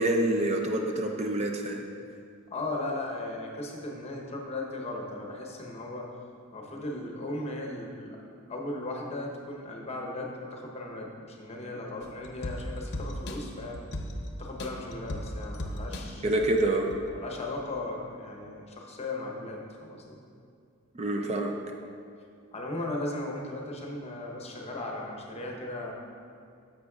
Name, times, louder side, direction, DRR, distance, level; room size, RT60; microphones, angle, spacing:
voice 1, 0.0-1.8 16.2-16.9 20.9-21.5, right 1 dB, 30° right, 2 dB, 0.4 m, -27 dB
voice 2, 2.5-6.1 6.5-8.2 8.5-13.8 14.4-16.2 17.1-20.2 22.5-25.9, left 2 dB, 30° left, 0 dB, 0.9 m, -37 dB
sound 1, 12.0-17.2 17.6-17.7, left 1 dB, 50° left, 0.7 m, -38 dB
10.0 x 7.2 x 2.4 m, 2.4 s
head